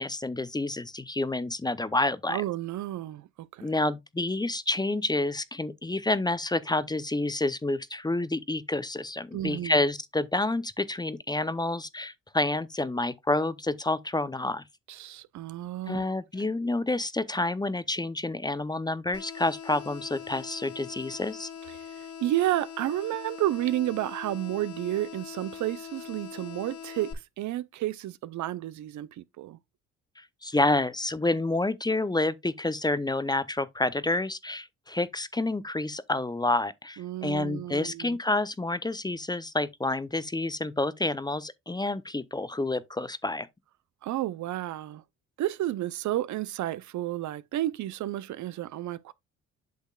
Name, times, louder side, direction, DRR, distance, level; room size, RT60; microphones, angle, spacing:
voice 1, 0.0-2.4 3.6-14.6 15.9-21.5 30.2-43.5, left 2 dB, 15° left, 0.6 m, -29 dB
voice 2, 2.3-3.7 9.3-9.8 14.9-16.1 21.8-29.6 37.0-38.2 44.0-45.0 45.4-49.1, right 14 dB, 65° right, 0.6 m, -31 dB
sound 1, 19.1-27.1, left 8 dB, 70° left, 1.7 m, -42 dB
8.3 x 6.4 x 2.3 m
supercardioid pair, 65°, 32 cm